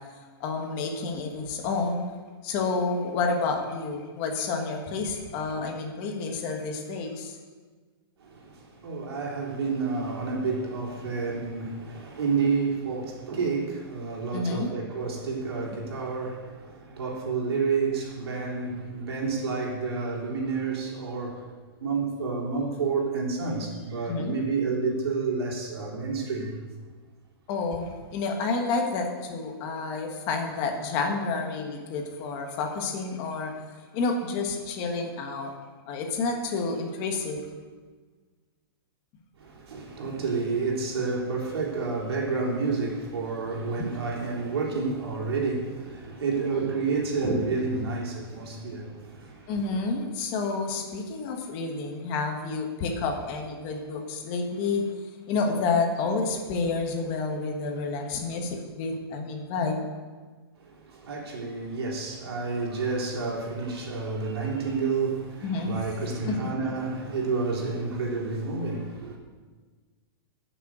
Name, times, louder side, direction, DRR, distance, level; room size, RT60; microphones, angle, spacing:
voice 1, 0.4-2.0 2.4-7.4 14.3-14.7 24.1-24.3 27.5-33.5 33.9-35.5 35.9-37.5 43.8-43.9 49.5-54.8 55.3-59.9 65.4-65.8 66.2-66.5, left 4 dB, 25° left, 1.4 m, -29 dB
voice 2, 8.2-21.5 21.8-26.6 39.4-49.8 60.6-69.2, right 4 dB, 85° right, 3.6 m, -30 dB
11.0 x 6.9 x 7.8 m
hypercardioid pair, 175°, 13 cm